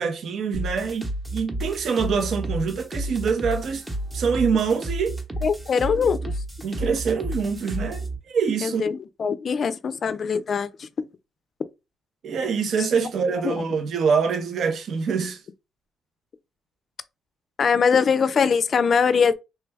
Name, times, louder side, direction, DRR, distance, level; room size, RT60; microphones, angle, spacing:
voice 1, 0.0-3.8 4.1-5.2 6.6-8.8 12.2-15.4, right 5 dB, 60° right, 0.6 m, -25 dB
sound 1, 0.5-8.2, right 1 dB, 15° right, 0.8 m, -31 dB
voice 2, 5.4-6.3 8.6-10.9 13.4-13.6 17.6-19.3, left 6 dB, 50° left, 0.4 m, -22 dB
3.2 x 2.2 x 3.3 m
cardioid pair, 90°, 0 cm